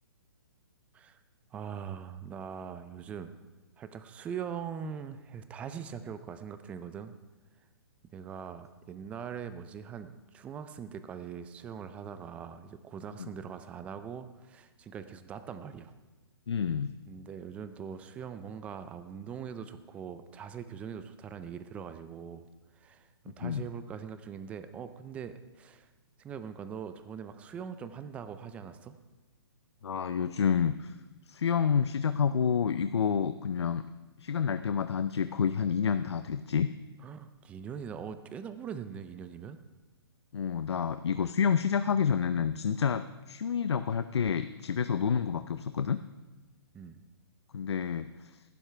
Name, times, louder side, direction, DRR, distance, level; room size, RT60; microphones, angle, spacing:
voice 1, 1.5-3.3 3.8-7.1 8.1-15.9 17.1-22.5 22.7-25.9 26.2-29.0 37.0-39.6 46.7-47.0, right 7 dB, 10° right, 11 dB, 0.4 m, -42 dB
voice 2, 16.5-17.0 23.4-23.7 29.8-30.9 31.3-33.8 34.2-36.7 40.3-46.0 47.5-48.4, left 7 dB, 90° left, 11 dB, 0.5 m, -29 dB
14.5 x 12.0 x 3.4 m, 1.2 s
hypercardioid pair, 155°, 14 cm